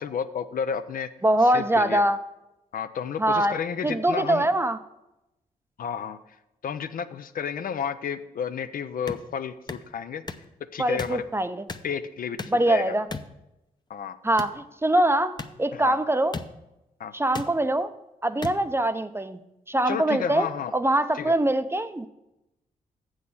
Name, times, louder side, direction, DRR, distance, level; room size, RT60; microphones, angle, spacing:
voice 1, 0.0-1.1 1.4-2.0 2.7-4.5 5.8-6.2 6.6-10.2 10.7-11.2 11.8-12.4 12.7-13.0 13.9-14.2 15.7-16.0 17.0-17.1 19.9-20.7 21.1-21.3, left 7 dB, 60° left, 11 dB, 0.5 m, -31 dB
voice 2, 1.2-2.2 3.2-3.6 3.8-4.8 10.8-11.6 12.5-13.1 14.2-16.4 17.1-17.9 18.2-19.4 19.7-20.5 20.7-22.1, right 1 dB, 15° right, 11 dB, 0.6 m, -23 dB
sound 1, 9.1-9.2 9.7-9.8 10.3-10.5 11.0-11.2 11.7-11.9 12.4-12.6 13.1-13.3 14.4-14.6 15.4-15.5 16.3-16.5 17.3-17.5 18.4-18.6, left 4 dB, 25° left, 0.7 m, -34 dB
7.4 x 6.3 x 7.0 m, 0.92 s
supercardioid pair, 50°, 16 cm